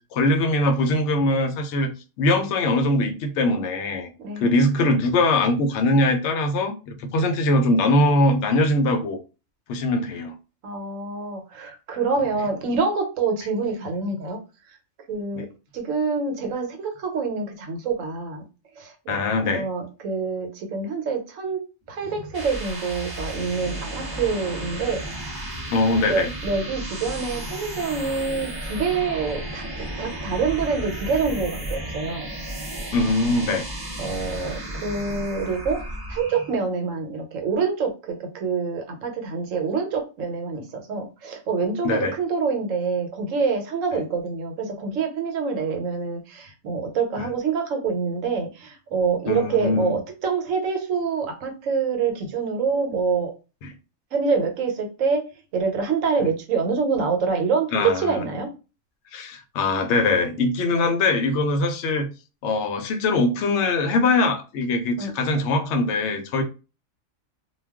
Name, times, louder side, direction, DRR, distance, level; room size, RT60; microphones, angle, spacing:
voice 1, 0.1-4.1 4.4-9.2 9.7-10.3 15.4-15.5 19.1-19.7 25.7-26.3 32.9-33.7 41.8-42.1 47.2-47.3 49.3-49.9 53.6-53.7 57.7-58.2 59.1-62.1 62.4-66.4, left 2 dB, 70° left, 0.8 m, -22 dB
voice 2, 10.6-14.4 15.1-15.5 15.7-18.4 18.8-19.2 19.4-21.6 21.9-25.0 26.1-29.6 30.0-32.3 34.0-35.8 36.1-53.3 54.1-55.2 55.5-58.5 65.0-65.1, right 5 dB, 75° right, 1.1 m, -26 dB
sound 1, 22.1-36.6, right 1 dB, 30° right, 0.4 m, -33 dB
2.3 x 2.2 x 3.4 m
omnidirectional pair, 1.3 m